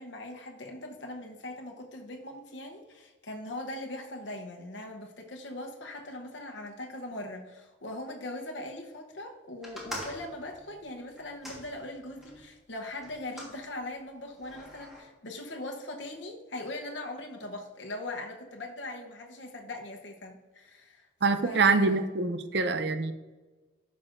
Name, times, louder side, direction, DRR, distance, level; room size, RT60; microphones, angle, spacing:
voice 1, 0.0-21.1 21.4-22.0, left 1 dB, 70° left, 2 dB, 0.9 m, -40 dB
sound 1, 9.6-12.4 13.0-13.6 14.4-15.0, equal, ahead, 1.4 m, -43 dB
voice 2, 21.2-23.1, right 4 dB, 60° right, 10 dB, 0.5 m, -25 dB
10.5 x 6.1 x 2.6 m, 1.2 s
head